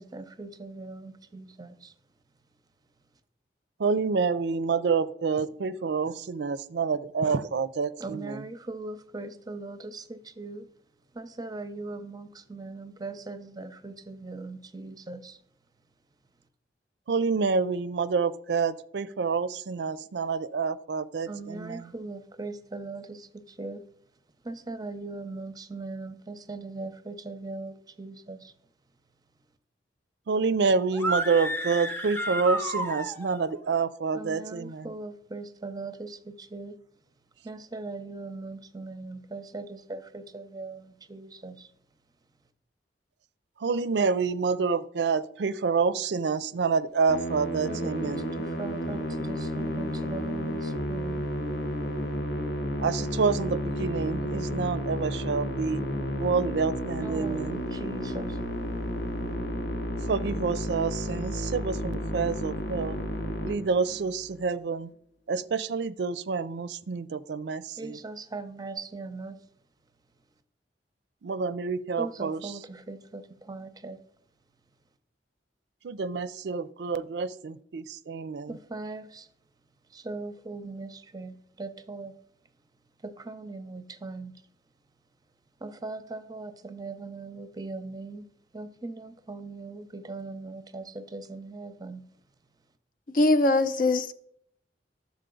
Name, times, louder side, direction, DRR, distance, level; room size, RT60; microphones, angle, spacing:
voice 1, 0.0-1.9 8.0-10.7 11.1-15.4 21.3-23.3 23.6-23.8 24.4-28.5 34.1-36.7 37.4-41.7 47.7-51.2 57.0-58.4 67.8-69.4 72.0-74.0 78.5-79.3 79.9-82.1 83.0-84.3 85.6-88.2 88.5-92.0, right 3 dB, 20° right, 0.6 m, -40 dB
voice 2, 3.8-8.4 17.1-21.9 30.3-34.9 43.6-48.3 52.8-55.8 56.2-57.6 60.1-63.0 63.4-64.9 65.3-68.0 71.2-72.6 75.8-78.6, right 5 dB, 75° right, 0.4 m, -28 dB
sound 1, 30.9-33.5, right 1 dB, 15° left, 0.8 m, -31 dB
Musical instrument, 47.1-64.2, equal, 80° left, 1.0 m, -32 dB
voice 3, 93.1-94.1, left 2 dB, 50° left, 0.5 m, -22 dB
11.0 x 7.2 x 3.8 m
head